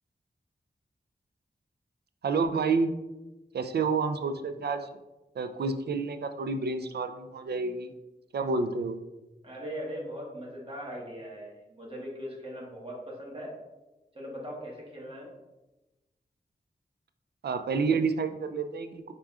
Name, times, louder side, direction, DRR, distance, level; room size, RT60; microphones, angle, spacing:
voice 1, 2.2-2.9 3.5-5.0 5.4-7.9 8.3-9.0 17.4-19.1, right 4 dB, 75° right, 9 dB, 0.4 m, -29 dB
voice 2, 9.4-13.5 14.1-15.3, equal, 35° right, -4 dB, 1.4 m, -40 dB
4.8 x 4.3 x 2.4 m, 1.1 s
wide cardioid pair, 90°, 17 cm